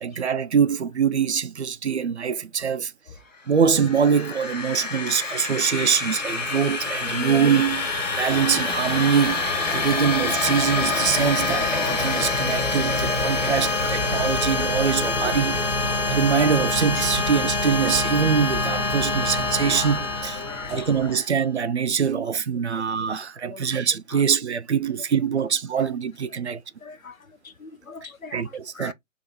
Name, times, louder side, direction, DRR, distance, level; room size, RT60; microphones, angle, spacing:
voice 1, 0.0-2.9 3.5-15.6 16.1-20.4 20.7-26.6 28.3-28.9, right 7 dB, 55° right, 0.5 m, -24 dB
sound 1, 3.6-21.2, left 3 dB, 65° left, 1.6 m, -26 dB
sound 2, 10.7-21.2, left 3 dB, 20° left, 1.2 m, -38 dB
voice 2, 20.5-20.9 22.7-22.8 23.5-23.6 24.1-24.2 26.8-27.1 27.6-28.4 28.8-28.9, left 4 dB, 85° left, 0.7 m, -40 dB
3.7 x 3.0 x 3.5 m
figure-of-eight pair, 140°, 40 cm